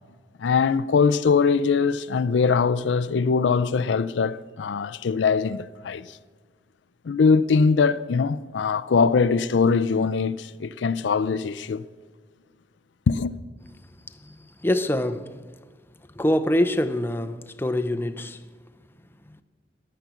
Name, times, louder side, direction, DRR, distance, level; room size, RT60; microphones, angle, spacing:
voice 1, 0.4-6.0 7.1-11.8 13.1-13.3, left 5 dB, 75° left, 0.4 m, -22 dB
voice 2, 14.2-15.4 16.1-18.4 19.3-19.4, left 1 dB, 10° left, 0.6 m, -25 dB
15.0 x 10.0 x 7.0 m
head